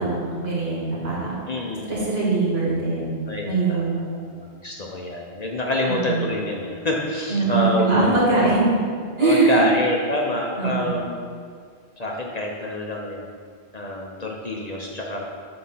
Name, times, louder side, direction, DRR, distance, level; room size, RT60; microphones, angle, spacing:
voice 1, 0.0-1.3 1.9-3.2 3.5-4.0 5.8-6.3 7.3-8.7 9.2-9.6 10.6-11.0, right 3 dB, 70° right, -6 dB, 2.0 m, -22 dB
voice 2, 1.5-2.2 3.3-8.1 9.2-11.2 12.0-13.2 13.7-15.2, left 1 dB, 45° left, -1 dB, 0.8 m, -27 dB
6.4 x 4.3 x 5.6 m, 2.1 s
omnidirectional pair, 1.1 m